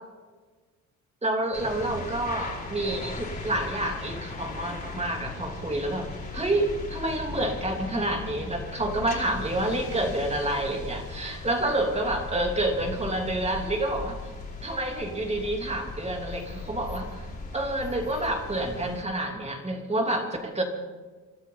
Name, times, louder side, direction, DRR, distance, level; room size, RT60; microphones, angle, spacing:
voice 1, 1.2-14.2 14.6-17.2 17.5-20.6, right 1 dB, 20° right, 2 dB, 3.0 m, -28 dB
sound 1, 1.5-19.0, left 3 dB, 30° left, 4.6 m, -38 dB
26.0 x 13.0 x 4.0 m, 1.4 s
cardioid pair, 90°, 30 cm